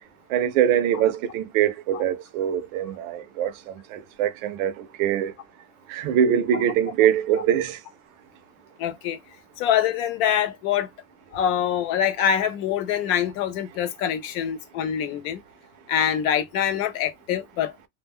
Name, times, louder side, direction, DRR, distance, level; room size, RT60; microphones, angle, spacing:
voice 1, 0.3-5.3 5.9-7.8, right 10 dB, 60° right, 0.6 m, -23 dB
voice 2, 8.8-9.2 9.6-10.9 11.3-15.4 15.9-17.7, left 9 dB, 60° left, 0.7 m, -24 dB
2.2 x 2.1 x 3.5 m
supercardioid pair, 160°, 47 cm